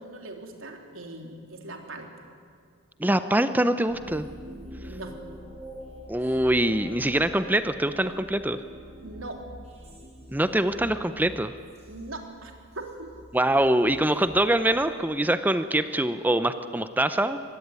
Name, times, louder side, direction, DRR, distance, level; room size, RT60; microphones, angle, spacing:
voice 1, 0.0-2.3 4.8-5.1 9.0-9.4 11.9-13.1, right 2 dB, 75° right, 3 dB, 3.5 m, -40 dB
voice 2, 3.0-4.3 6.1-8.6 10.3-11.5 13.3-17.4, right 1 dB, 10° right, 11 dB, 0.7 m, -24 dB
sound 1, 3.9-15.4, equal, 30° right, 6.9 m, -46 dB
25.0 x 19.0 x 9.7 m, 2.1 s
head